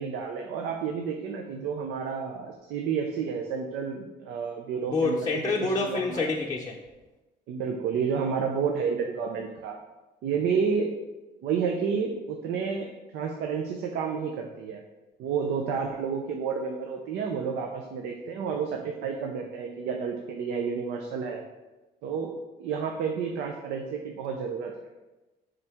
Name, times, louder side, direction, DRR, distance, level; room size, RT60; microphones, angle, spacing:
voice 1, 0.0-5.3 5.6-6.2 7.5-9.8 10.2-11.0 11.4-14.8 15.2-21.4 22.0-24.9, right 6 dB, 80° right, 2 dB, 0.6 m, -30 dB
voice 2, 4.9-6.8, left 3 dB, 20° left, -2 dB, 0.5 m, -27 dB
5.5 x 5.3 x 3.5 m, 1.1 s
cardioid pair, 110°, 17 cm